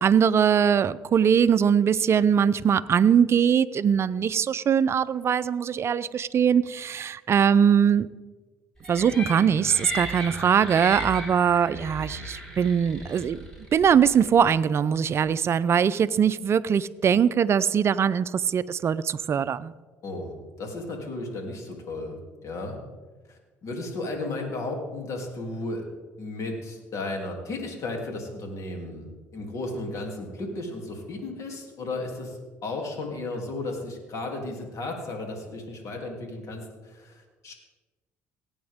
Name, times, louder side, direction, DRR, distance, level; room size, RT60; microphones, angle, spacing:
voice 1, 0.0-8.1 8.9-13.4 13.7-19.7, right 7 dB, 45° right, 16 dB, 0.5 m, -21 dB
sound 1, 8.8-14.3, equal, 5° left, 4.5 m, -36 dB
voice 2, 20.0-22.8 23.3-25.8 26.2-37.5, left 2 dB, 55° left, 2 dB, 2.9 m, -34 dB
18.0 x 8.8 x 3.6 m, 1.3 s
hypercardioid pair, 65°, 6 cm